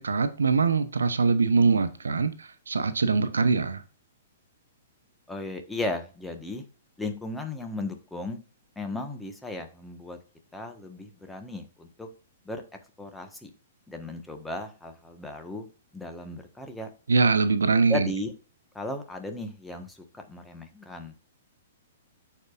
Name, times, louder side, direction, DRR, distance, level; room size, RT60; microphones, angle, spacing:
voice 1, 0.0-3.8 17.1-18.1, right 4 dB, 80° right, 10 dB, 0.9 m, -23 dB
voice 2, 5.3-6.6 7.0-8.4 8.7-10.2 10.5-12.1 12.4-12.6 13.0-13.5 13.9-15.7 15.9-16.9 17.9-18.3 18.7-21.1, left 2 dB, 5° left, 5 dB, 1.4 m, -35 dB
14.5 x 4.8 x 2.5 m, 0.36 s
figure-of-eight pair, 115°, 0 cm